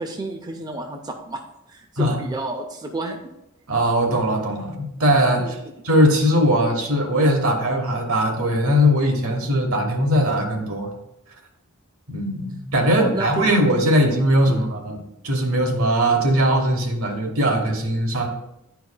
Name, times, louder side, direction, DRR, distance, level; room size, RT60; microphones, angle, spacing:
voice 1, 0.0-1.4 1.7-3.2 5.4-5.5 12.8-13.5 14.5-14.7, right 2 dB, 20° right, 3 dB, 0.4 m, -30 dB
voice 2, 3.7-5.4 5.8-10.9 12.1-15.0 15.2-18.3, equal, 75° right, 2 dB, 1.1 m, -20 dB
10.5 x 4.6 x 2.2 m, 0.86 s
head